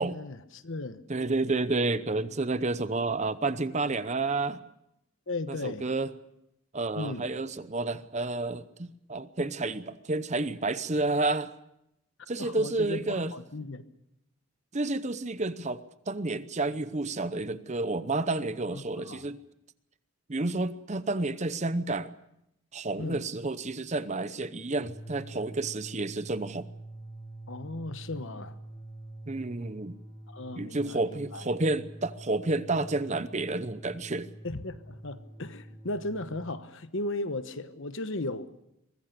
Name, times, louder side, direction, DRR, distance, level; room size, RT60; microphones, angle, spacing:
voice 1, 0.0-1.0 5.3-5.9 6.9-7.2 12.4-13.8 18.7-19.2 23.0-23.2 27.5-28.6 30.3-31.5 34.4-38.5, left 2 dB, 55° left, 1.1 m, -36 dB
voice 2, 1.1-4.6 5.5-6.1 6.7-11.5 12.3-13.3 14.7-19.4 20.3-22.1 22.7-26.7 29.3-29.9 30.6-34.3, right 2 dB, 30° right, 0.8 m, -30 dB
sound 1, 24.8-36.6, right 1 dB, 25° left, 2.1 m, -46 dB
23.5 x 20.5 x 6.7 m
head